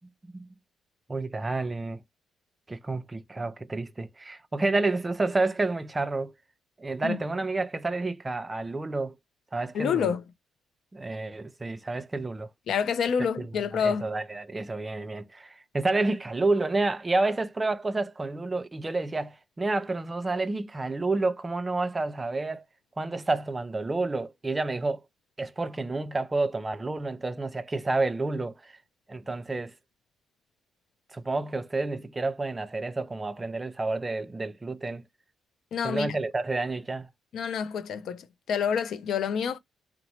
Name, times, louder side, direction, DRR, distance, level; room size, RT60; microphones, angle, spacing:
voice 1, 0.0-0.5 1.1-2.0 2.7-6.3 6.8-9.1 9.5-10.1 10.9-12.5 13.4-13.5 13.7-22.6 23.0-25.0 25.4-28.7 29.1-29.7 31.1-35.0 35.8-37.1, right 3 dB, 20° right, 0.4 m, -29 dB
voice 2, 9.7-10.2 12.7-14.1 35.7-36.2 37.3-39.6, left 7 dB, 70° left, 0.4 m, -28 dB
2.9 x 2.0 x 2.7 m
cardioid pair, 90°, 0 cm